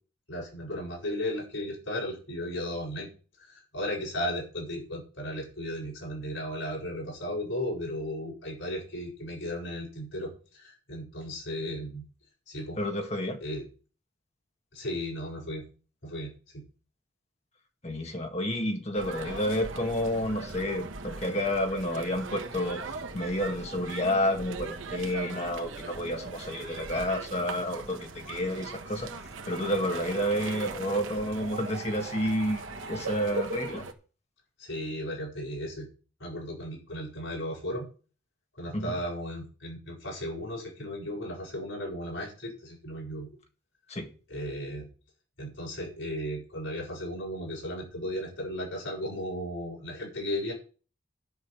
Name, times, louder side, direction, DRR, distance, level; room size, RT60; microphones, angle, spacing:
voice 1, 0.3-3.1 3.4-12.0 12.5-12.8 13.4-13.7 14.7-15.7 16.0-16.6 34.6-35.9 36.2-37.9 38.5-43.3 44.3-44.9 45.4-50.5, equal, 75° left, 6.6 m, -35 dB
voice 2, 12.8-13.4 17.8-22.8 23.1-29.1 29.5-33.9 38.7-38.9 43.9-44.1, equal, 30° left, 1.8 m, -30 dB
sound 1, 18.9-33.9, right 3 dB, 80° right, 1.3 m, -40 dB
10.5 x 5.6 x 8.3 m
head